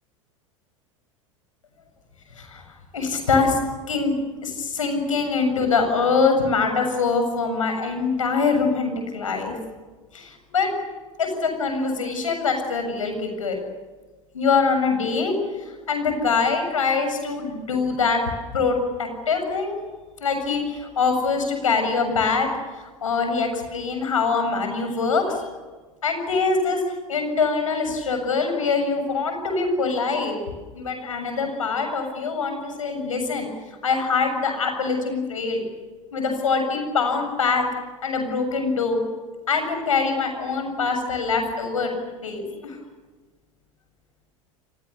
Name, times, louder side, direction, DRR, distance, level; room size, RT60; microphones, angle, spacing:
voice 1, 2.9-3.6 3.9-4.1 4.4-9.5 10.1-10.7 11.2-13.6 14.3-15.3 15.9-18.2 18.5-19.8 20.2-22.5 22.8-25.5 26.0-26.8 27.1-30.4 30.7-33.5 33.8-35.6 36.1-37.6 38.0-39.0 39.5-42.8, left 4 dB, 80° left, 5 dB, 7.3 m, -23 dB
30.0 x 23.5 x 7.0 m, 1.3 s
figure-of-eight pair, 80°, 17 cm